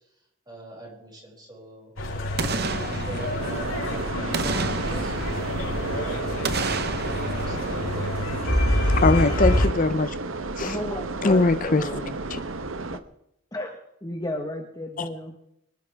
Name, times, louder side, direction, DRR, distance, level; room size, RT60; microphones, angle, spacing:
voice 1, 0.5-1.9 2.4-5.1 5.4-7.8, right 1 dB, 20° right, 7.1 m, -43 dB
sound 1, 2.0-9.7, left 1 dB, 90° left, 5.2 m, -27 dB
Boom, 2.4-3.9 4.3-6.0 6.4-8.7 9.0-9.1, right 4 dB, 50° right, 1.1 m, -32 dB
sound 2, 3.4-13.0, right 3 dB, 80° right, 1.1 m, -32 dB
voice 2, 9.0-10.1 10.6-10.8 11.2-11.9 12.3-12.4, left 3 dB, 40° left, 0.6 m, -21 dB
voice 3, 10.6-12.2 13.5-15.4, left 1 dB, 20° left, 1.5 m, -33 dB
25.0 x 12.5 x 3.6 m
head